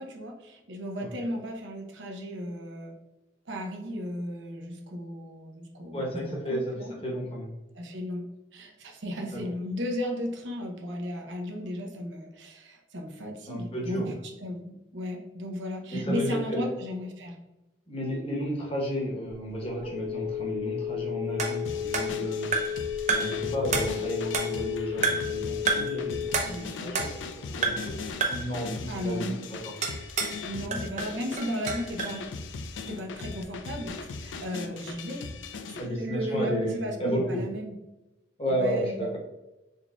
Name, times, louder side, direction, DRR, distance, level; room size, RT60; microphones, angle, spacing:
voice 1, 0.0-2.9 3.5-6.1 6.5-6.9 7.7-8.2 8.5-14.0 14.4-17.4 26.4-27.0 28.9-29.3 30.4-32.2 32.9-35.3 35.6-37.7 38.5-38.9, equal, 80° right, 2 dB, 0.7 m, -35 dB
voice 2, 5.9-6.7 7.0-7.5 9.4-9.5 13.5-14.2 15.9-16.7 17.9-22.5 23.1-28.0 28.3-29.8 35.8-37.4 38.4-39.2, equal, 30° left, -2 dB, 0.9 m, -32 dB
Telephone, 19.3-26.6, left 9 dB, 70° left, 0.9 m, -33 dB
sound 1, 21.4-22.8 23.1-23.4 23.7-24.7 25.0-25.4 25.7-26.0 26.3-27.3 27.6-27.9 28.2-28.5 29.8-30.4 30.7-32.2, right 4 dB, 40° right, 0.5 m, -30 dB
sound 2, 21.6-35.9, left 4 dB, 85° left, 0.4 m, -39 dB
4.1 x 3.5 x 2.3 m, 1.0 s
head